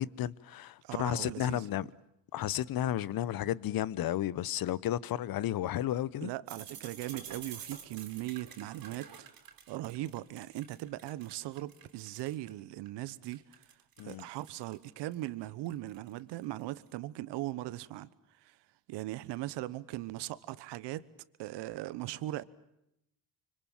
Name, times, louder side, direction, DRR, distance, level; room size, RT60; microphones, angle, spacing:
voice 1, 0.0-1.9 2.3-6.3 14.0-14.3, left 12 dB, 55° left, 1.0 m, -33 dB
voice 2, 0.8-1.9 6.2-9.3 9.7-13.6 14.0-18.1 18.4-18.6 18.9-21.1 21.4-22.4, right 16 dB, 75° right, 1.2 m, -39 dB
sound 1, 6.5-12.5 12.9-16.7, right 7 dB, 55° right, 4.0 m, -49 dB
25.5 x 25.0 x 7.3 m
supercardioid pair, 75°, 43 cm